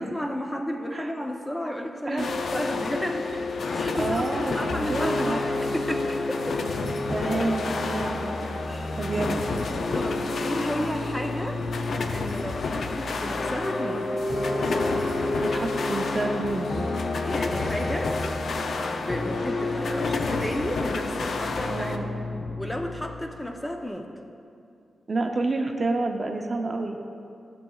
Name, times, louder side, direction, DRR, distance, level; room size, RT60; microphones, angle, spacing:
voice 1, 0.0-2.2 2.5-6.8 8.4-9.0 9.7-11.6 12.1-14.1 17.3-18.2 18.8-22.0 22.6-24.1, equal, 10° left, 3 dB, 0.6 m, -33 dB
voice 2, 2.1-2.4 4.0-5.4 7.1-8.2 9.0-9.4 15.4-16.9 21.7-22.1 25.1-27.0, right 2 dB, 40° right, 3 dB, 0.6 m, -29 dB
sound 1, 2.2-22.0, left 4 dB, 70° left, 0.4 m, -31 dB
sound 2, 4.7-23.9, left 2 dB, 45° left, 0.8 m, -31 dB
11.5 x 6.9 x 2.3 m, 2.5 s
cardioid pair, 80°, 0 cm